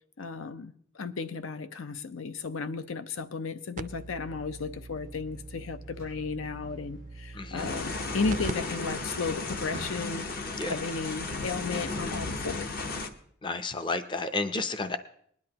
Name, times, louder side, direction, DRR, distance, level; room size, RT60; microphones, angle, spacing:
voice 1, 0.2-10.3 10.7-12.7, left 4 dB, 80° left, 0.6 m, -34 dB
sound 1, 3.8-8.5 8.9-9.0 9.6-9.7 10.3-10.4 10.6-10.9 12.1-12.2, right 3 dB, 40° right, 0.4 m, -42 dB
sound 2, 5.8-7.3 8.7-9.0 9.4-10.5, right 1 dB, 60° left, 6.3 m, -46 dB
voice 2, 7.3-7.7 10.6-10.8 13.4-15.0, left 3 dB, 25° left, 0.5 m, -31 dB
sound 3, 7.6-13.1, left 3 dB, 45° left, 0.8 m, -34 dB
20.5 x 10.5 x 2.9 m
head